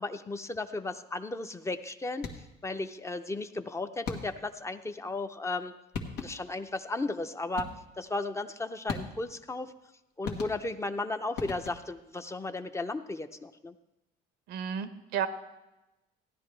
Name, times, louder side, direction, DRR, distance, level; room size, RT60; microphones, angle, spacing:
voice 1, 0.0-2.3 2.6-5.8 6.2-9.7 10.2-13.7, left 2 dB, 15° left, 9 dB, 0.5 m, -35 dB
sound 1, 2.1-2.6 4.0-4.6 5.6-5.7 5.9-6.6 7.6-8.0 8.9-9.4 10.2-10.9 11.4-12.0, left 5 dB, 90° left, 1.4 m, -39 dB
voice 2, 14.5-15.3, right 8 dB, 85° right, 12 dB, 0.8 m, -32 dB
15.5 x 10.5 x 3.3 m, 0.99 s
cardioid pair, 110°, 17 cm